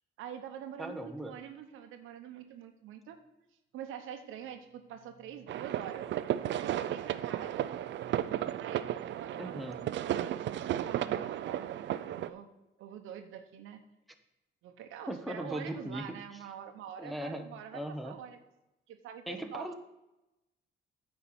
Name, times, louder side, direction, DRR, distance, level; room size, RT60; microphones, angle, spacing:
voice 1, 0.2-3.2 3.7-6.1 6.5-7.7 8.6-12.5 12.8-13.8 14.6-18.4 18.9-19.7, right 9 dB, 90° right, 7 dB, 1.0 m, -45 dB
voice 2, 0.8-1.4 9.4-9.8 15.1-16.1 17.0-18.1 19.3-19.7, right 1 dB, ahead, 5 dB, 0.9 m, -39 dB
sound 1, 5.5-12.3, right 11 dB, 65° right, 0.5 m, -34 dB
9.1 x 4.5 x 7.0 m, 0.95 s
cardioid pair, 90°, 20 cm